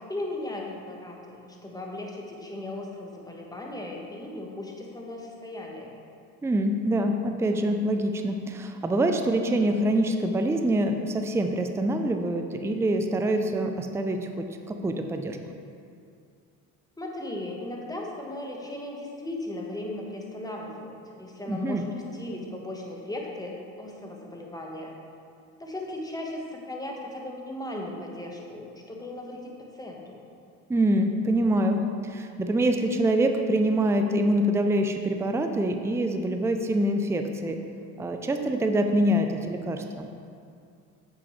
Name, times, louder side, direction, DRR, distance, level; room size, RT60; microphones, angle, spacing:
voice 1, 0.1-6.0 17.0-24.9 25.6-30.2, left 1 dB, 10° left, -1 dB, 1.3 m, -37 dB
voice 2, 6.4-15.4 21.5-21.8 30.7-31.8 32.1-37.6 38.0-40.1, right 1 dB, 5° right, 6 dB, 0.4 m, -25 dB
7.5 x 5.9 x 3.2 m, 2.4 s
hypercardioid pair, 65°, 39 cm